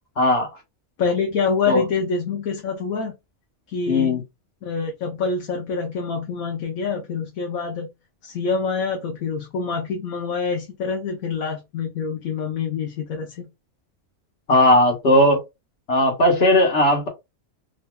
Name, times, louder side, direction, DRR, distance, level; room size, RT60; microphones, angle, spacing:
voice 1, 0.2-0.5 1.7-1.8 3.9-4.2 14.5-15.4 15.9-17.1, left 1 dB, 50° left, 1.4 m, -17 dB
voice 2, 1.0-3.1 3.7-4.2 4.6-7.9 8.2-13.5, left 5 dB, 85° left, 1.3 m, -26 dB
3.7 x 2.7 x 2.3 m
omnidirectional pair, 1.4 m